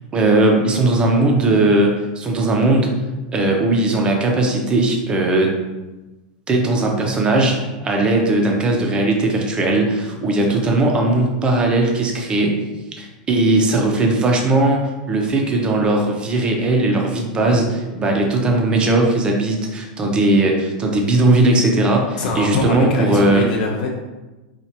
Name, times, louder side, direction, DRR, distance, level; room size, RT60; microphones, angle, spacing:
voice 1, 0.1-2.9 3.3-5.6 6.5-12.5 13.0-23.4, right 2 dB, 20° right, 1 dB, 0.6 m, -18 dB
voice 2, 22.2-23.9, left 3 dB, 65° left, -1 dB, 0.6 m, -23 dB
4.4 x 2.4 x 2.8 m, 1.1 s
supercardioid pair, 135°, 5 cm